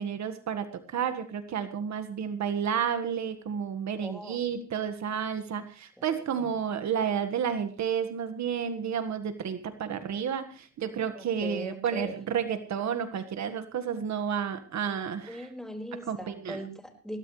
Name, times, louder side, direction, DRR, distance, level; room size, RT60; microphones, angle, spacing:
voice 1, 0.0-15.5 16.1-16.6, right 7 dB, 70° right, 10 dB, 1.6 m, -31 dB
voice 2, 4.0-4.5 6.0-6.5 11.1-12.1 15.2-17.2, equal, ahead, 4 dB, 4.9 m, -40 dB
21.5 x 17.0 x 3.3 m, 0.35 s
cardioid pair, 95°, 29 cm